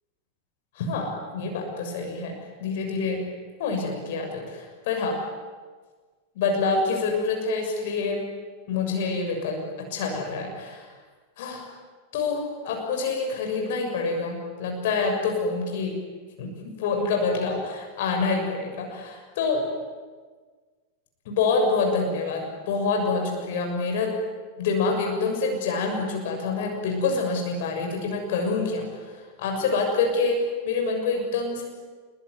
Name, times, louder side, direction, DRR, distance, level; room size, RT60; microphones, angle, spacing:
voice 1, 0.7-3.3 3.6-5.2 6.3-8.2 8.7-10.9 11.4-11.6 12.1-16.0 16.4-19.6 21.2-24.1 24.6-31.6, left 4 dB, 55° left, 2 dB, 6.8 m, -27 dB
26.5 x 23.0 x 9.7 m, 1.4 s
figure-of-eight pair, 90°, 0 cm